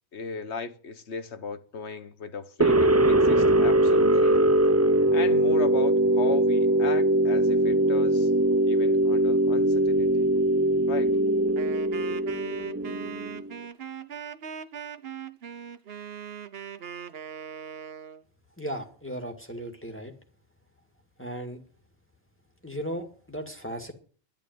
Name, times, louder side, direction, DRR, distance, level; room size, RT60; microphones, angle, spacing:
voice 1, 0.1-4.4 5.1-8.3 8.6-10.3 10.9-11.2, left 5 dB, 80° left, 1.5 m, -36 dB
sound 1, 2.6-13.5, right 1 dB, 20° right, 0.4 m, -22 dB
Wind instrument woodwind instrument, 11.6-18.2, right 8 dB, 65° right, 1.1 m, -40 dB
voice 2, 18.6-20.1 21.2-21.6 22.6-23.9, right 1 dB, 10° left, 2.1 m, -36 dB
11.0 x 11.0 x 9.3 m
omnidirectional pair, 1.1 m